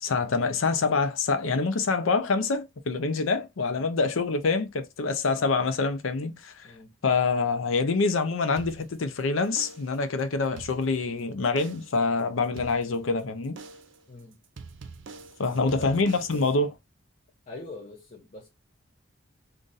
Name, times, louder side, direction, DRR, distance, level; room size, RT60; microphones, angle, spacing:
voice 1, 0.0-6.7 7.0-13.6 15.4-16.7, left 4 dB, 80° left, 0.5 m, -26 dB
sound 1, 8.6-9.2 9.6-10.1 10.4-11.2 11.6-12.0 12.6-13.2 13.6-14.0 14.6-16.6, right 4 dB, 70° right, 0.5 m, -45 dB
voice 2, 14.1-14.4 15.4-15.9 17.5-18.5, left 2 dB, 40° left, 0.6 m, -42 dB
2.6 x 2.5 x 3.8 m
head